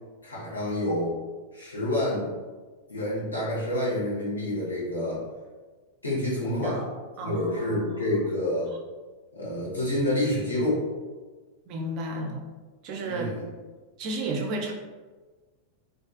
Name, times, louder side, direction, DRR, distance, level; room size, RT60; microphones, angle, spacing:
voice 1, 0.2-1.1 1.5-2.3 2.9-5.2 6.0-6.8 7.2-8.7 9.3-10.8 13.1-13.4, left 1 dB, 80° left, -8 dB, 1.0 m, -28 dB
sound 1, 6.4-7.0, left 3 dB, 50° left, 0.4 m, -42 dB
voice 2, 7.2-8.0 11.7-12.4 12.8-13.3 14.0-14.7, right 2 dB, 40° right, 1 dB, 0.4 m, -32 dB
2.5 x 2.3 x 2.3 m, 1.3 s
figure-of-eight pair, 90°, 0 cm